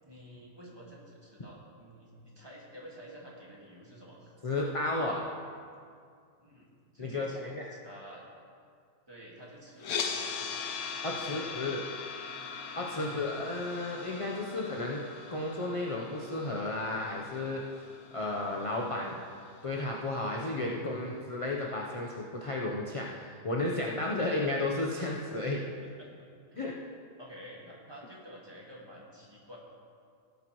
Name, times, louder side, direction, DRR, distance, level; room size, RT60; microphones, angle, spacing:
voice 1, 0.0-4.4 6.4-8.2 9.1-10.5 10.9-11.7 12.9-13.3 19.2-19.3 25.8-26.1 26.5-26.6 27.2-29.6, equal, 15° right, -4 dB, 1.8 m, -50 dB
voice 2, 4.4-5.2 7.0-7.6 11.0-11.8 12.7-15.0 15.3-17.7 18.1-19.2 19.6-25.7 26.6-26.8, left 2 dB, 30° left, -2 dB, 0.6 m, -33 dB
sound 1, 9.8-19.9, left 5 dB, 80° left, 1.3 m, -40 dB
16.5 x 8.3 x 3.1 m, 2.2 s
omnidirectional pair, 1.6 m